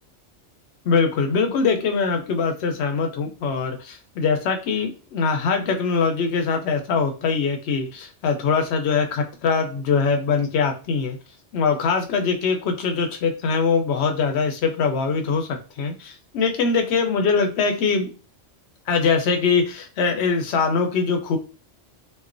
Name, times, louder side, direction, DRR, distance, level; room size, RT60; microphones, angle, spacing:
voice 1, 0.8-11.2 11.5-18.1 18.9-21.4, left 5 dB, 70° left, 4 dB, 0.8 m, -22 dB
3.1 x 2.1 x 2.5 m, 0.34 s
omnidirectional pair, 1.2 m